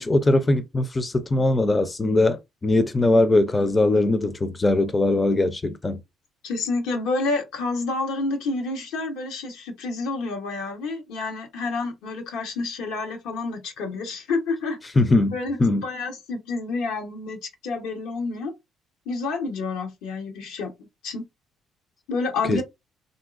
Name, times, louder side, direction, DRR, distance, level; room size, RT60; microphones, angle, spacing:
voice 1, 0.0-6.0 15.0-15.3 15.6-15.8 22.5-22.6, left 2 dB, 20° left, 0.4 m, -21 dB
voice 2, 6.4-14.8 15.1-17.4 17.6-18.5 19.1-20.7 21.0-21.2 22.1-22.6, left 3 dB, 85° left, 1.0 m, -29 dB
3.0 x 2.6 x 2.5 m
cardioid pair, 85°, 0 cm